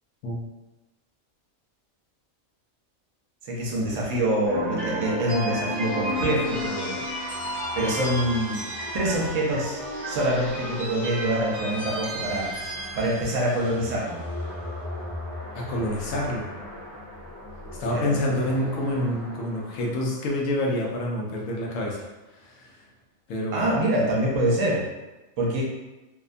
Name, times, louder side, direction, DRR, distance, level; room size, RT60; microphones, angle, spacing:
voice 1, 3.4-7.0 7.3-8.6 8.9-12.5 13.0-14.2 17.9-18.2 23.5-24.9 25.4-25.6, right 1 dB, 70° right, -3 dB, 0.9 m, -25 dB
sound 1, 4.5-20.7, equal, 35° right, 1.3 m, -33 dB
voice 2, 15.5-16.5 17.8-22.1 22.3-22.7 23.3-23.7, left 1 dB, 70° left, -2 dB, 0.9 m, -27 dB
2.7 x 2.1 x 2.4 m, 1.1 s
omnidirectional pair, 1.5 m